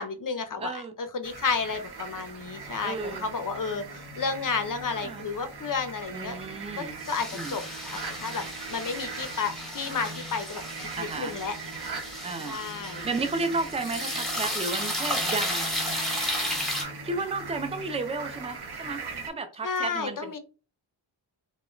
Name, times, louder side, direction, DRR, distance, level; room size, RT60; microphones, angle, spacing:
voice 1, 0.0-6.4 6.7-7.6 7.9-8.4 8.7-11.5 12.5-13.1 19.6-20.4, left 5 dB, 45° left, 0.5 m, -32 dB
voice 2, 0.6-0.9 2.8-3.3 5.0-5.2 6.1-7.0 7.3-7.5 11.0-11.3 12.2-12.6 13.0-15.7 17.0-20.4, right 3 dB, 15° right, 0.3 m, -33 dB
sound 1, 1.2-19.3, right 5 dB, 55° right, 0.8 m, -41 dB
sound 2, 2.4-18.6, right 1 dB, 70° right, 1.1 m, -47 dB
sound 3, 7.0-16.8, equal, ahead, 0.8 m, -33 dB
2.1 x 2.1 x 3.6 m
wide cardioid pair, 65°, 48 cm